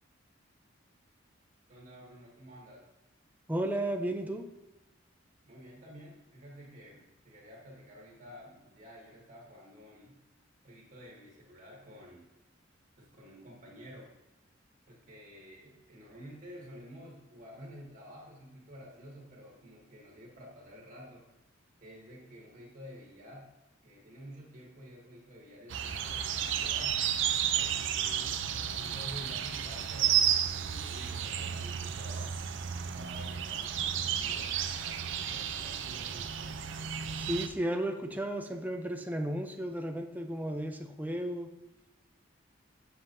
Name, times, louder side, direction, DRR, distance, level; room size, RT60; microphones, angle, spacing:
voice 1, 1.7-2.9 5.4-10.2 10.6-12.3 13.0-14.1 14.9-21.3 21.8-23.5 23.8-27.0 27.6-32.3 32.8-36.6, equal, 40° right, -3 dB, 1.9 m, -51 dB
voice 2, 3.5-4.5 37.2-41.5, right 1 dB, 10° right, 4 dB, 0.6 m, -34 dB
sound 1, 25.7-37.5, right 9 dB, 65° right, 0.5 m, -32 dB
7.6 x 7.1 x 2.6 m, 1.0 s
head